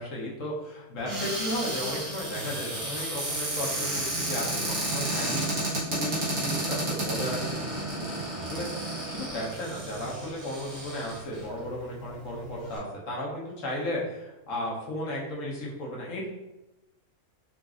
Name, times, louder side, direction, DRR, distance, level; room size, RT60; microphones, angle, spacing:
voice 1, 0.0-7.7 7.9-16.3, left 1 dB, 65° left, -3 dB, 1.1 m, -35 dB
Cupboard open or close, 1.0-11.4 12.1-12.2 12.4-12.8, right 1 dB, 85° right, 1.7 m, -32 dB
3.9 x 2.5 x 2.4 m, 0.97 s
omnidirectional pair, 1.5 m